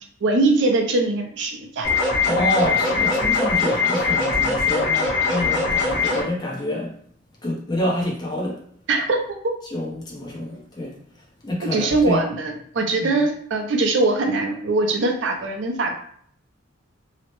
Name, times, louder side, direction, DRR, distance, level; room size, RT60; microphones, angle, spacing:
voice 1, 0.2-1.9 8.9-9.2 11.6-15.9, right 2 dB, 60° right, 0.5 m, -21 dB
sound 1, 1.8-6.2, left 4 dB, 60° left, 1.3 m, -21 dB
voice 2, 2.2-7.0 7.4-8.6 9.6-11.0 11.4-12.2 13.0-13.2, left 1 dB, 20° left, 0.6 m, -27 dB
2.8 x 2.1 x 2.9 m
head